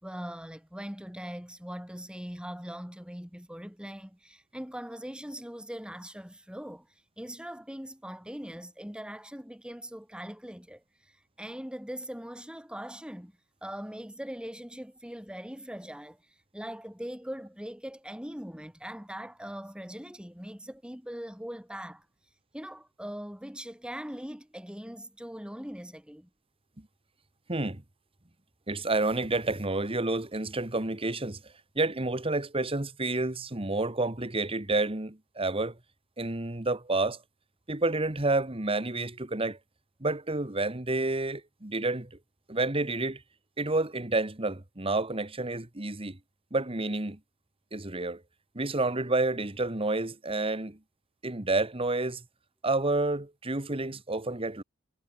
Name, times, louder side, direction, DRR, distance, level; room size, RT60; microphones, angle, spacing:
voice 1, 0.0-6.9 7.2-13.3 13.6-16.2 16.5-22.1 22.5-26.3, equal, 5° right, 3.9 m, -41 dB
voice 2, 27.5-27.8 28.7-35.8 36.2-37.2 37.7-39.6 40.0-42.2 42.5-43.2 43.6-46.2 46.5-47.2 47.7-48.2 48.5-50.8 51.2-52.2 52.6-54.6, right 2 dB, 30° right, 1.7 m, -29 dB
head